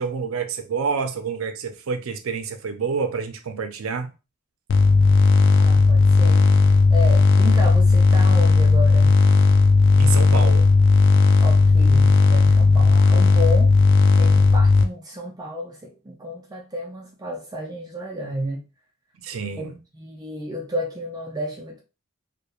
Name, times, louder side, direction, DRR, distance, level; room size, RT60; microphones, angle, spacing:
voice 1, 0.0-4.1 10.0-10.8 19.2-19.8, right 5 dB, 85° right, 0.4 m, -28 dB
sound 1, 4.7-14.8, left 3 dB, 60° left, 0.4 m, -15 dB
voice 2, 5.6-6.5 6.9-9.2 11.4-13.7 14.2-18.6 19.6-21.8, equal, 20° right, 0.4 m, -32 dB
2.9 x 2.1 x 2.3 m
head